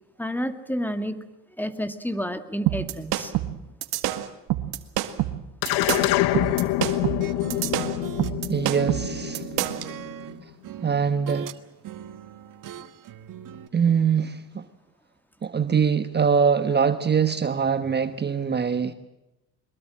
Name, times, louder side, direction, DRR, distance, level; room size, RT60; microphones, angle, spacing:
voice 1, 0.2-1.2 1.6-3.3, equal, 5° left, 9 dB, 2.1 m, -30 dB
sound 1, 2.7-9.9, right 14 dB, 75° right, 2.0 m, -27 dB
sound 2, 5.6-10.2, left 16 dB, 85° left, 1.1 m, -26 dB
sound 3, 6.3-8.4 8.6-11.6 11.8-13.7, right 9 dB, 55° right, 1.6 m, -39 dB
voice 2, 8.5-9.5 10.8-11.5 13.7-14.6 15.4-18.9, right 6 dB, 25° right, 10 dB, 1.2 m, -23 dB
23.5 x 21.5 x 7.6 m, 0.95 s
cardioid pair, 95°, 38 cm